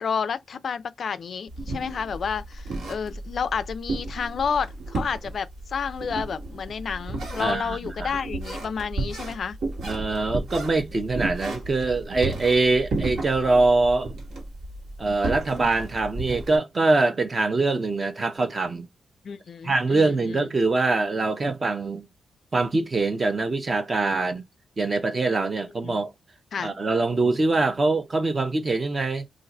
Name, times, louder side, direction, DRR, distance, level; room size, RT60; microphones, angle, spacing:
voice 1, 0.0-9.6 19.2-20.4 25.8-26.0 26.5-26.7, left 6 dB, 55° left, 0.3 m, -30 dB
sound 1, 1.5-16.6, right 2 dB, 70° right, 1.3 m, -33 dB
voice 2, 7.4-8.2 9.8-14.1 15.0-18.9 19.6-22.1 22.5-24.4 24.8-26.1 26.6-29.2, right 3 dB, 30° right, 0.6 m, -23 dB
2.6 x 2.5 x 4.0 m
wide cardioid pair, 135°, 0 cm